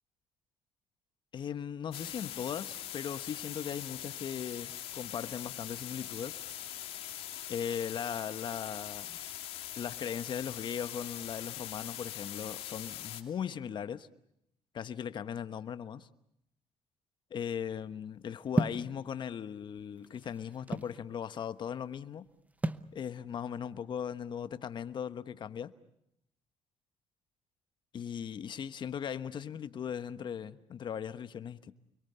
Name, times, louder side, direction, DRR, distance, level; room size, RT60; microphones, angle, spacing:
voice 1, 1.3-6.4 7.5-9.2 9.8-14.1 14.7-16.1 17.3-22.2 22.9-25.7 27.9-31.7, left 8 dB, 50° left, 1.2 m, -38 dB
sound 1, 1.9-13.2, left 12 dB, 70° left, 2.7 m, -42 dB
sound 2, 18.6-18.9 19.8-21.0 22.6-22.9, right 2 dB, 15° right, 0.9 m, -31 dB
29.5 x 22.5 x 6.9 m
cardioid pair, 95°, 10 cm